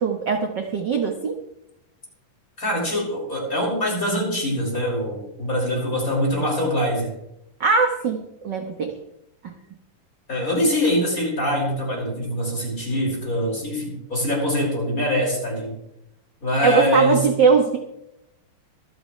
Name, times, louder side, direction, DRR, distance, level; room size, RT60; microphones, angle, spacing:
voice 1, 0.0-1.3 7.6-9.0 9.4-9.5 16.6-17.8, right 5 dB, 50° right, 4 dB, 1.3 m, -21 dB
voice 2, 2.6-7.1 10.3-15.7 16.4-17.3, equal, 25° left, -2 dB, 6.1 m, -23 dB
25.5 x 9.9 x 3.2 m, 0.81 s
omnidirectional pair, 3.6 m